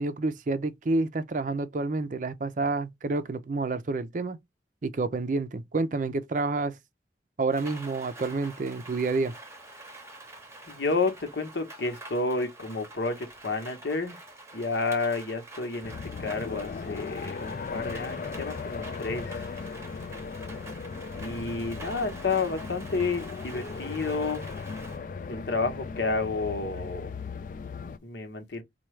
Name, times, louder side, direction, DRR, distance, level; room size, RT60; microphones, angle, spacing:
voice 1, 0.0-4.4 4.8-6.8 7.4-9.3, right 3 dB, 45° right, 0.4 m, -29 dB
Rain, 7.5-25.0, right 2 dB, 15° right, 0.8 m, -47 dB
voice 2, 10.7-14.2 14.5-15.9 16.2-19.5 21.1-24.4 25.3-27.1 28.0-28.6, left 3 dB, 80° left, 1.0 m, -30 dB
sound 1, 15.8-28.0, left 5 dB, 45° left, 0.3 m, -37 dB
4.4 x 2.3 x 3.1 m
head